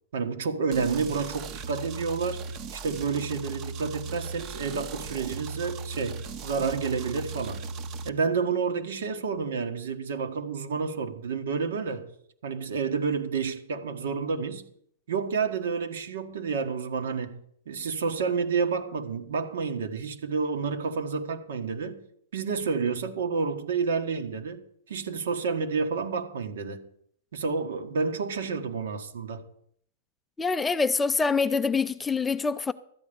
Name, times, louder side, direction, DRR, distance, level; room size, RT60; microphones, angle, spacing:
voice 1, 0.1-2.4 2.7-7.7 8.0-12.1 12.4-14.7 15.1-17.4 17.6-22.0 22.3-24.6 24.9-26.8 27.3-29.4, right 5 dB, 75° right, 1.6 m, -29 dB
sound 1, 0.7-8.1, right 4 dB, 30° right, 0.7 m, -37 dB
voice 2, 30.4-32.7, left 4 dB, 10° left, 0.4 m, -25 dB
13.0 x 8.8 x 5.3 m
hypercardioid pair, 150°, 0 cm